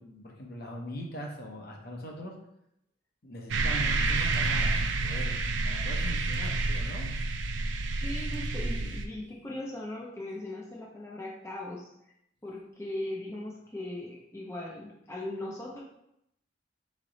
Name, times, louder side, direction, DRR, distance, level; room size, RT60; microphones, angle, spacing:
voice 1, 0.0-2.3 3.2-7.2, equal, 50° left, 0 dB, 0.8 m, -41 dB
sound 1, 3.5-9.1, right 3 dB, 75° right, 0.4 m, -29 dB
voice 2, 8.0-11.9 12.4-15.8, left 1 dB, 15° left, -4 dB, 0.6 m, -39 dB
3.7 x 3.2 x 4.0 m, 0.80 s
head